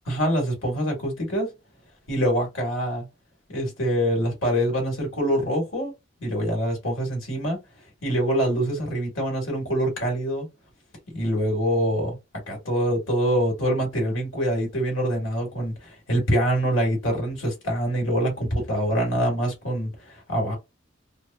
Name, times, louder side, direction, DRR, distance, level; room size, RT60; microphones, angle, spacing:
voice 1, 0.0-1.5 2.1-3.1 3.5-5.9 6.2-7.6 8.0-10.5 11.1-12.1 12.5-20.6, equal, 85° left, 1.5 m, -25 dB
3.2 x 2.0 x 2.3 m
head